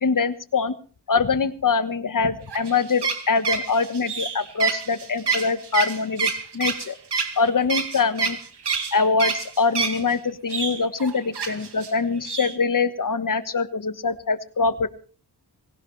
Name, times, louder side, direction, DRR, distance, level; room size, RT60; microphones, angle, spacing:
voice 1, 0.0-0.8 1.1-6.9 7.4-8.4 8.9-14.9, left 4 dB, 50° left, 11 dB, 1.4 m, -23 dB
sound 1, 2.5-10.1 10.5-11.9 12.2-12.5, right 5 dB, 70° right, 2.2 m, -27 dB
19.5 x 17.5 x 3.3 m, 0.39 s
cardioid pair, 65°, 41 cm